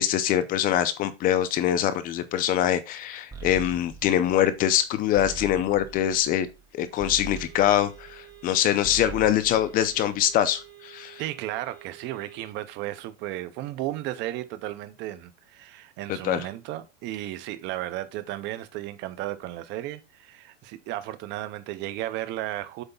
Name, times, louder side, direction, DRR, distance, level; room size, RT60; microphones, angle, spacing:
voice 1, 0.0-6.5 6.7-11.2 16.2-16.4, left 11 dB, 25° left, 0.6 m, -24 dB
sound 1, 3.3-8.5 8.8-10.5, right 5 dB, 10° right, 1.4 m, -42 dB
sound 2, 7.4-12.5, right 12 dB, 60° right, 3.8 m, -50 dB
voice 2, 11.2-22.8, right 14 dB, 30° right, 0.7 m, -34 dB
8.0 x 3.4 x 5.5 m
supercardioid pair, 160°, 37 cm